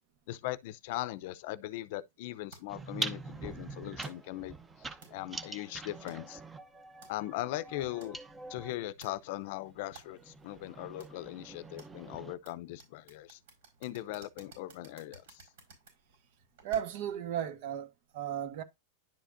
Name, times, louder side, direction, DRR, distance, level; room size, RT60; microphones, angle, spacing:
voice 1, 0.3-6.4 7.1-8.2 8.5-13.4 13.8-15.4, left 16 dB, 60° left, 0.6 m, -39 dB
sound 1, 2.5-17.2, right 4 dB, 75° right, 4.7 m, -58 dB
sound 2, 2.7-8.8 9.6-12.3, right 3 dB, 15° right, 0.7 m, -44 dB
voice 2, 16.6-18.6, right 9 dB, 60° right, 1.2 m, -35 dB
10.5 x 5.0 x 2.6 m
supercardioid pair, 140°, 0 cm